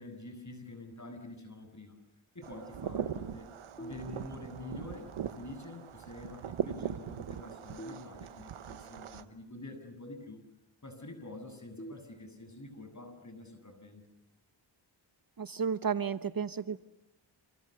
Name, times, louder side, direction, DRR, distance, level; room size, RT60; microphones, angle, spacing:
voice 1, 0.0-2.0 2.3-3.5 3.8-10.4 10.8-14.0, left 2 dB, 35° left, 7 dB, 7.6 m, -47 dB
sound 1, 2.4-9.2, right 9 dB, 90° right, 1.1 m, -40 dB
sound 2, 3.8-4.7 7.8-8.8 11.8-12.8, right 1 dB, 20° left, 1.4 m, -49 dB
voice 2, 15.4-16.8, right 6 dB, 45° right, 13 dB, 1.0 m, -32 dB
29.0 x 28.0 x 6.8 m, 0.80 s
cardioid pair, 60°, 48 cm